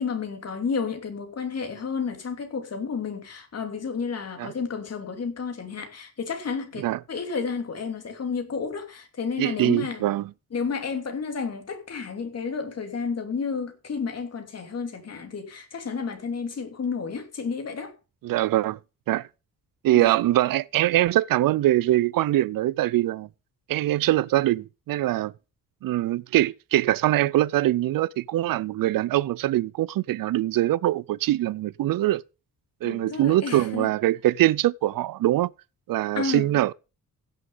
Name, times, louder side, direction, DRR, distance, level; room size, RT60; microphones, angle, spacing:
voice 1, 0.0-10.0 10.5-17.9 19.9-20.1 32.8-33.9 36.1-36.6, left 5 dB, 45° left, 2.8 m, -31 dB
voice 2, 9.4-10.3 18.2-18.8 19.1-19.3 19.8-23.3 23.7-25.3 25.8-32.2 32.8-35.5 35.9-36.7, right 15 dB, 70° right, 0.5 m, -23 dB
16.0 x 6.5 x 5.5 m
wide cardioid pair, 140°, 35 cm